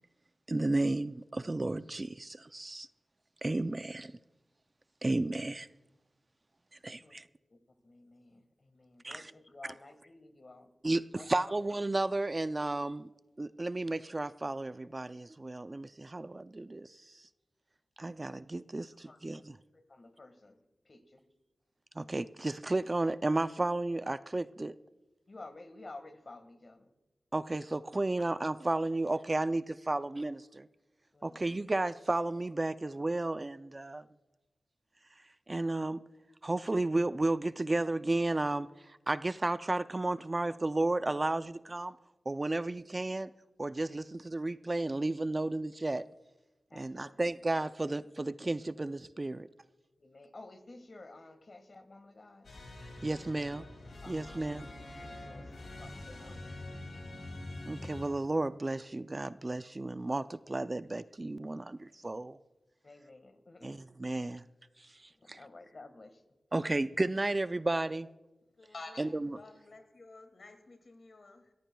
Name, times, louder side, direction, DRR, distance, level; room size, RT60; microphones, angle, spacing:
voice 1, 0.5-2.9 3.4-4.1 5.0-5.7 6.8-7.2 9.0-9.3 9.6-9.7 10.8-13.1 13.4-17.0 18.0-19.6 22.0-24.7 27.3-30.7 31.2-34.1 35.5-36.0 36.4-42.0 42.3-43.3 43.6-46.0 46.7-49.5 53.0-53.7 54.1-54.7 57.7-62.4 63.6-64.4 64.8-65.4 66.5-68.1 69.0-69.3, right 2 dB, 30° right, 0.4 m, -33 dB
voice 2, 7.8-10.7 11.1-11.2 19.1-19.2 19.9-20.5 20.9-21.2 25.3-26.8 31.1-31.4 46.7-47.1 50.0-52.5 54.0-54.4 55.0-56.8 62.8-63.7 65.2-66.1, left 2 dB, 50° left, 1.6 m, -52 dB
sound 1, 52.4-58.1, left 1 dB, 80° left, 4.2 m, -45 dB
voice 3, 68.6-71.5, left 3 dB, 65° left, 2.1 m, -50 dB
25.5 x 14.5 x 2.3 m
wide cardioid pair, 75°, 0 cm